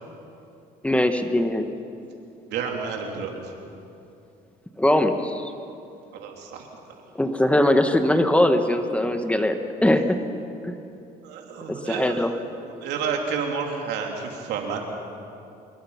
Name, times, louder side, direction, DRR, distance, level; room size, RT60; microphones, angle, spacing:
voice 1, 0.8-1.7 4.8-5.5 7.1-10.2 10.6-10.8 11.7-12.3, left 1 dB, 5° left, 7 dB, 1.3 m, -21 dB
voice 2, 2.5-3.3 6.1-6.7 11.2-12.2 12.7-14.8, right 6 dB, 85° right, 1 dB, 3.3 m, -30 dB
26.0 x 22.5 x 5.8 m, 2.7 s
cardioid pair, 110°, 17 cm